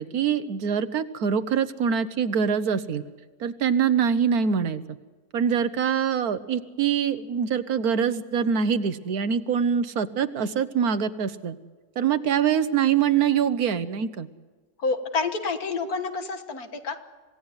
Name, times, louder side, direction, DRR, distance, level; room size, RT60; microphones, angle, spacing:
voice 1, 0.0-3.0 3.4-4.8 5.3-11.6 12.0-14.3, right 7 dB, 70° right, 12 dB, 1.5 m, -24 dB
voice 2, 14.8-17.0, left 4 dB, 70° left, 7 dB, 2.0 m, -28 dB
26.5 x 17.0 x 9.6 m, 1.3 s
omnidirectional pair, 1.7 m